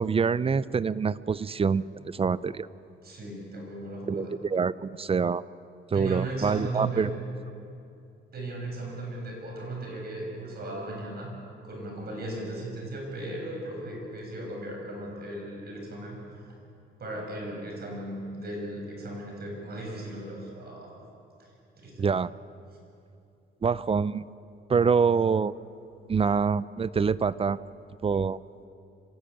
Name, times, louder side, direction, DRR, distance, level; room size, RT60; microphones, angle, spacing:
voice 1, 0.0-2.7 4.1-5.4 5.9-7.1 22.0-22.3 23.6-24.3 24.7-25.5 26.1-27.6 28.0-28.4, right 5 dB, 30° right, 18 dB, 0.6 m, -25 dB
voice 2, 3.0-4.4 5.9-7.2 8.3-11.3 11.6-16.5 17.0-20.9 21.4-21.5 21.8-22.1, right 1 dB, 50° right, 0 dB, 7.8 m, -37 dB
26.0 x 17.0 x 8.8 m, 2.6 s
cardioid pair, 90°, 20 cm